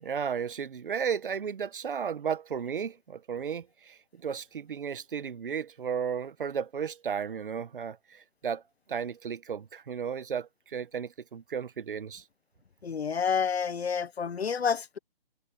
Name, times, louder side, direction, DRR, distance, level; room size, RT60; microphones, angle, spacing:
voice 1, 0.0-8.6 8.9-12.2, right 7 dB, 60° right, 1.4 m, -34 dB
voice 2, 12.8-15.0, left 6 dB, 90° left, 1.0 m, -29 dB
hypercardioid pair, 160°, 31 cm